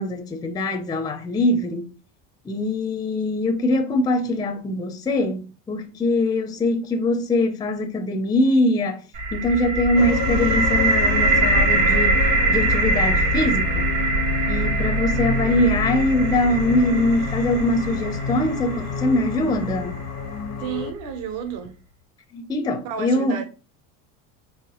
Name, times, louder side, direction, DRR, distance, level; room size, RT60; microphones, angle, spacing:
voice 1, 0.0-1.9 2.4-9.0 9.3-13.8 14.5-20.0 22.3-23.4, left 1 dB, 10° left, 0.5 m, -22 dB
sound 1, 9.1-21.0, right 2 dB, 85° right, 2.1 m, -23 dB
sound 2, 10.0-20.9, left 6 dB, 65° left, 0.6 m, -29 dB
voice 2, 20.6-21.8 22.8-23.5, right 7 dB, 60° right, 1.1 m, -31 dB
4.7 x 3.4 x 3.0 m
supercardioid pair, 130°, 37 cm